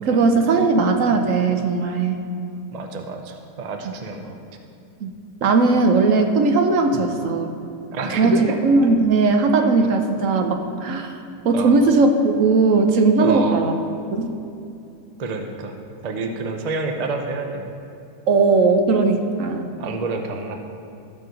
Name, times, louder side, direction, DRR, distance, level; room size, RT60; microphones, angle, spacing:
voice 1, 0.0-2.2 3.8-3.9 5.0-5.1 5.4-7.5 8.2-11.1 11.4-13.7 14.2-14.3 18.3-19.7, right 3 dB, 60° right, 5 dB, 1.0 m, -18 dB
voice 2, 2.7-4.4 6.9-7.0 7.9-8.6 11.5-11.8 13.2-13.6 15.2-15.8 16.0-17.7 19.8-20.5, right 3 dB, 80° right, 4 dB, 0.3 m, -28 dB
13.5 x 4.6 x 5.1 m, 2.5 s
omnidirectional pair, 1.8 m